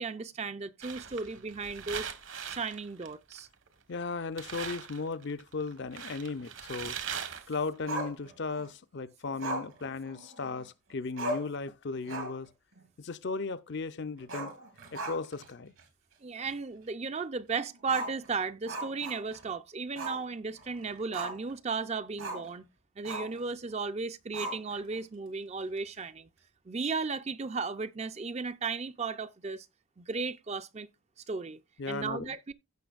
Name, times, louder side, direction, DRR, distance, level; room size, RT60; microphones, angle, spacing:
voice 1, 0.0-2.1 2.4-3.5 16.2-22.7 23.0-26.3 26.7-29.7 30.0-30.9 31.3-31.6 31.9-32.5, right 4 dB, 30° right, 0.4 m, -35 dB
sound 1, 0.8-3.7 4.0-4.1 4.4-8.0, right 7 dB, 65° right, 1.2 m, -40 dB
voice 2, 3.9-7.0 7.5-12.5 13.0-14.5 14.9-15.7 31.8-32.3, left 4 dB, 55° left, 0.5 m, -36 dB
Growling, 7.9-8.7 9.4-10.6 10.9-11.0 11.2-11.6 12.0-12.5 12.8-12.9 14.2-15.5 15.8-15.9 16.4-16.5 17.8-19.5 20.0-20.2 20.6-21.5 22.2-22.5 23.0-23.4 24.3-25.0, right 1 dB, 85° right, 3.6 m, -38 dB
16.0 x 5.9 x 2.4 m
head